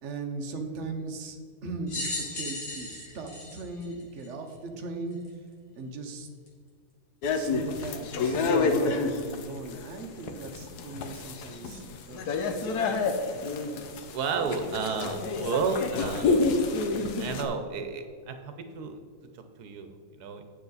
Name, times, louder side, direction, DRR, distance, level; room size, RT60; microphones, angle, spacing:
voice 1, 0.0-5.2 5.7-6.3 7.3-12.4 14.5-14.6, right 3 dB, 50° right, 3 dB, 1.2 m, -38 dB
sound 1, 1.9-4.5 5.2-5.3 6.5-6.6, left 2 dB, 55° left, 2.5 m, -36 dB
sound 2, 7.2-17.5, left 3 dB, 85° left, 1.3 m, -29 dB
voice 2, 14.1-16.4 17.2-19.0 19.6-20.4, right 5 dB, 85° right, 7 dB, 1.3 m, -32 dB
9.4 x 6.9 x 4.0 m, 2.1 s
omnidirectional pair, 1.6 m